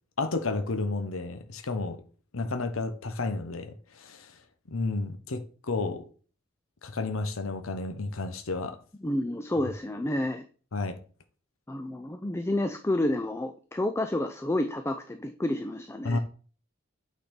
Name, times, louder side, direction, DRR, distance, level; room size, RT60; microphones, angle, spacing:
voice 1, 0.2-2.0 2.3-4.4 4.7-6.1 6.8-8.8 10.7-11.0 16.0-16.2, left 3 dB, 85° left, 0.9 m, -31 dB
voice 2, 9.0-10.4 11.7-16.2, left 1 dB, 15° left, 0.4 m, -30 dB
8.8 x 4.1 x 5.2 m
head